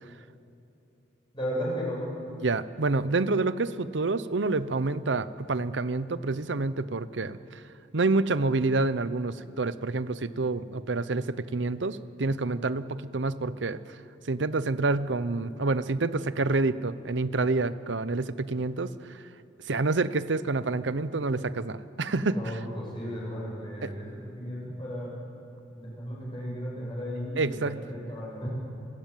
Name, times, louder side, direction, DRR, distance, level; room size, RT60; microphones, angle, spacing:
voice 1, 1.3-2.0 22.3-25.2 25.7-28.5, equal, 25° left, -4 dB, 7.4 m, -35 dB
voice 2, 2.4-7.6 7.9-13.8 14.3-18.9 19.7-22.4 23.8-23.9 27.4-27.8, right 3 dB, 75° right, 14 dB, 0.8 m, -28 dB
29.5 x 13.0 x 9.1 m, 2.8 s
head